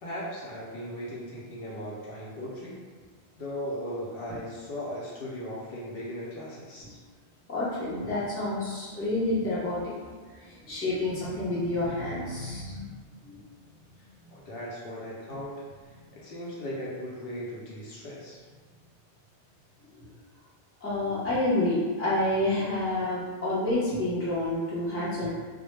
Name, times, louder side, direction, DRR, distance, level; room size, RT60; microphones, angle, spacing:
voice 1, 0.0-2.8 3.4-7.0 14.3-15.6 16.1-18.4, equal, 65° left, -6 dB, 0.7 m, -37 dB
voice 2, 7.5-12.9 13.2-13.4 19.9-20.1 20.8-25.3, left 1 dB, 15° left, -9 dB, 0.5 m, -29 dB
2.1 x 2.0 x 3.1 m, 1.5 s
omnidirectional pair, 1.1 m